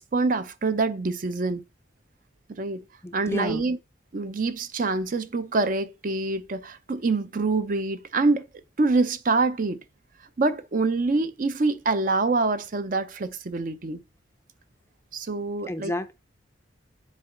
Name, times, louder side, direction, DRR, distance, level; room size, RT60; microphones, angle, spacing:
voice 1, 0.0-1.6 2.6-2.8 3.1-3.8 4.1-8.5 8.8-9.8 10.4-14.0 15.1-15.9, right 3 dB, 40° right, 0.5 m, -25 dB
voice 2, 3.0-3.6 15.7-16.1, left 1 dB, 15° left, 0.4 m, -30 dB
7.4 x 5.1 x 3.7 m
head